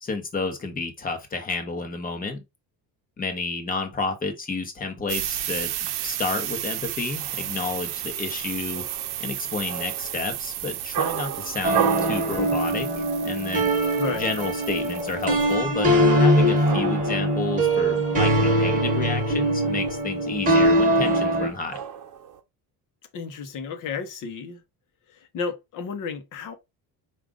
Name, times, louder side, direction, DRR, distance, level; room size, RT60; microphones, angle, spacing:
voice 1, 0.0-2.4 3.2-5.7 6.0-8.9 9.2-13.7 14.2-21.8, left 3 dB, 20° left, 0.9 m, -31 dB
sound 1, 5.1-15.6, right 12 dB, 70° right, 0.7 m, -33 dB
sound 2, 6.0-22.4, right 10 dB, 50° right, 1.0 m, -36 dB
sound 3, 11.6-21.5, right 1 dB, 20° right, 1.0 m, -22 dB
voice 2, 14.0-14.4 23.1-24.6 25.1-26.6, left 5 dB, 50° left, 0.9 m, -32 dB
4.9 x 2.5 x 3.5 m
cardioid pair, 180°, 40 cm